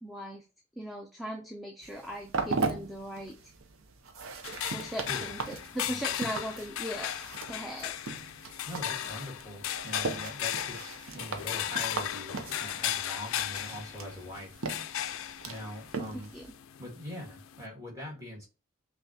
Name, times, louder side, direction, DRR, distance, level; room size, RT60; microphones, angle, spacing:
voice 1, 0.0-0.4 0.8-3.4 4.7-7.2 7.5-7.9 16.1-16.5, equal, ahead, 0 dB, 0.4 m, -39 dB
sound 1, 1.8-16.5, right 4 dB, 75° right, 0.6 m, -39 dB
sound 2, 4.4-17.7, left 11 dB, 75° left, 0.3 m, -36 dB
voice 2, 8.6-14.6 15.4-16.3 16.8-18.5, left 1 dB, 15° right, -2 dB, 1.5 m, -42 dB
5.5 x 2.3 x 2.8 m, 0.32 s
head